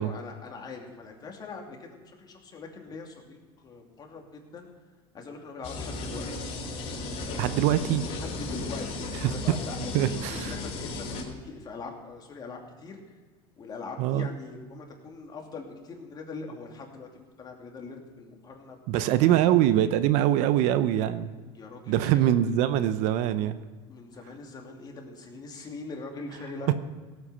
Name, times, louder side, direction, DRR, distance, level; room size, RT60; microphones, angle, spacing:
voice 1, 0.0-4.7 5.1-6.4 8.0-13.0 13.6-19.6 21.5-22.3 23.9-26.7, left 3 dB, 30° left, 1 dB, 2.7 m, -42 dB
sound 1, 5.6-11.2, left 3 dB, 55° left, 3.4 m, -35 dB
voice 2, 7.4-8.0 9.2-9.3 9.9-10.5 14.0-14.3 18.9-21.3 21.9-23.6, right 12 dB, 65° right, 13 dB, 0.8 m, -23 dB
17.0 x 8.2 x 5.7 m, 1.4 s
supercardioid pair, 110°, 13 cm